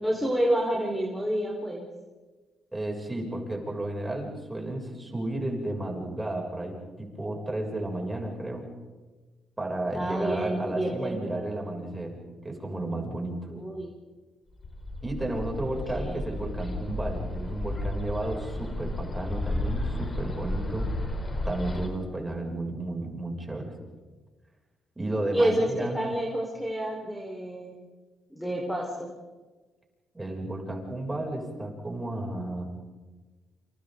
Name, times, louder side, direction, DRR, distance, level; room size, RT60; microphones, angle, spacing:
voice 1, 0.0-1.9 9.9-11.4 13.5-13.9 15.9-16.2 25.3-27.7 28.3-29.1, right 1 dB, 5° left, -1 dB, 4.7 m, -29 dB
voice 2, 2.7-8.7 9.6-12.1 12.4-13.5 15.0-20.9 21.5-23.7 25.0-26.0 30.1-32.6, right 1 dB, 15° right, 0 dB, 7.2 m, -33 dB
Bird, 14.6-21.9, left 1 dB, 30° left, 3.9 m, -33 dB
29.0 x 28.0 x 4.0 m, 1.3 s
cardioid pair, 90°, 0 cm